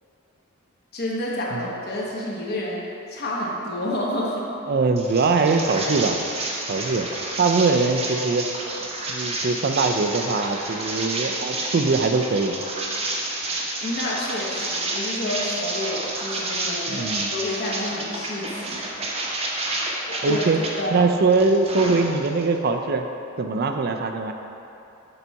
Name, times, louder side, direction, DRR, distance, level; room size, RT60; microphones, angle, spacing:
voice 1, 0.9-4.5 13.8-18.9 20.1-20.4 20.8-21.0, left 1 dB, 50° left, -4 dB, 1.1 m, -29 dB
voice 2, 4.7-6.2 6.7-7.1 7.4-8.5 9.1-12.5 16.9-17.3 20.2-20.6 20.9-23.1 23.4-24.3, right 4 dB, 45° right, 6 dB, 0.4 m, -22 dB
sound 1, 5.0-20.7 21.1-22.4, right 2 dB, 30° right, 0.8 m, -30 dB
7.0 x 4.1 x 4.6 m, 2.8 s
head